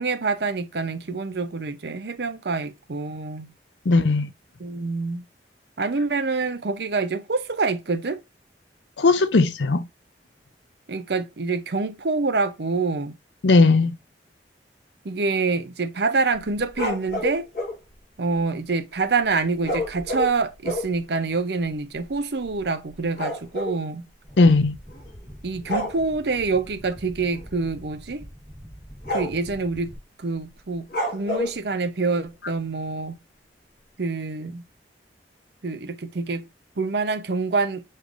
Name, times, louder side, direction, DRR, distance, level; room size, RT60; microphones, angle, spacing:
voice 1, 0.0-3.5 4.6-5.2 5.8-8.2 10.9-13.2 15.0-17.5 18.2-24.0 25.4-28.2 29.1-33.2 34.0-34.6 35.6-36.5 36.8-37.8, right 4 dB, 65° right, 0.7 m, -26 dB
voice 2, 3.9-4.3 9.0-9.9 13.4-13.9 24.4-24.7, left 3 dB, 85° left, 0.6 m, -17 dB
sound 1, 16.3-17.8 19.6-21.0 21.7-21.8 22.0-22.2 22.5-23.8 24.9-25.2 25.6-26.0 27.3-27.5 27.9-28.0 28.5-28.7 29.1-29.5 30.9-31.6, left 1 dB, 55° left, 2.3 m, -29 dB
sound 2, 24.2-30.0, equal, 10° left, 2.0 m, -44 dB
6.5 x 3.2 x 2.5 m
head